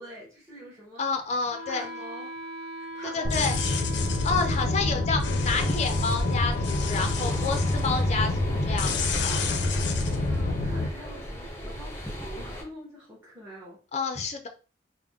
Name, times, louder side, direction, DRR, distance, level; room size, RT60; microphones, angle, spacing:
voice 1, 0.0-1.1 1.7-3.6 10.2-13.8, equal, 15° right, 1.1 m, -45 dB
voice 2, 1.0-1.9 3.1-3.6 4.2-9.4 13.9-14.5, left 4 dB, 40° left, 0.5 m, -29 dB
Wind instrument woodwind instrument, 1.5-11.5, left 1 dB, 80° right, 0.7 m, -42 dB
sound 1, 3.2-10.9, left 2 dB, 90° left, 0.5 m, -27 dB
sound 2, 5.4-12.6, equal, 15° left, 0.8 m, -37 dB
3.5 x 2.1 x 3.5 m
head